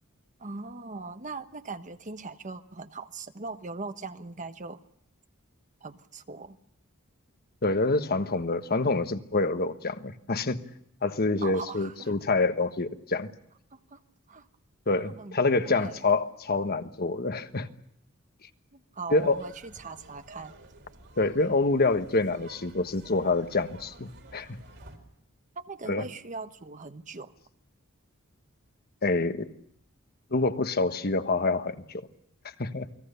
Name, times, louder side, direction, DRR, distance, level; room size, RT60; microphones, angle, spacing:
voice 1, 0.4-4.8 5.8-6.6 11.4-12.1 13.7-14.0 14.3-14.5 14.9-16.1 18.7-20.5 25.5-27.3, right 3 dB, 35° right, 10 dB, 1.2 m, -40 dB
voice 2, 7.6-10.6 11.0-13.3 14.9-17.7 19.1-19.4 21.2-24.6 25.9-26.1 29.0-29.5 30.3-32.1 32.6-32.9, left 3 dB, 50° left, 10 dB, 1.3 m, -26 dB
sound 1, 19.1-25.0, right 2 dB, 60° right, 4.2 m, -52 dB
29.0 x 20.5 x 6.8 m, 0.73 s
head